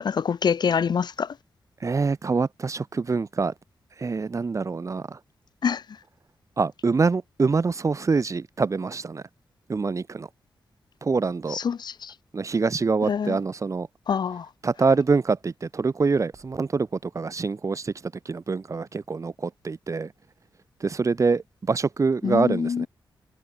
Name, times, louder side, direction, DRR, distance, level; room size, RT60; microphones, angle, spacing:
voice 1, 0.0-1.4 5.6-5.8 11.5-12.1 13.0-13.4 14.1-14.5 22.2-22.9, left 7 dB, 65° left, 1.1 m, -25 dB
voice 2, 1.8-3.5 4.0-5.2 6.6-9.2 9.7-10.3 11.0-11.6 12.3-13.9 14.6-17.9 18.2-20.1 20.8-22.9, right 4 dB, 40° right, 1.1 m, -25 dB
cardioid pair, 65°, 8 cm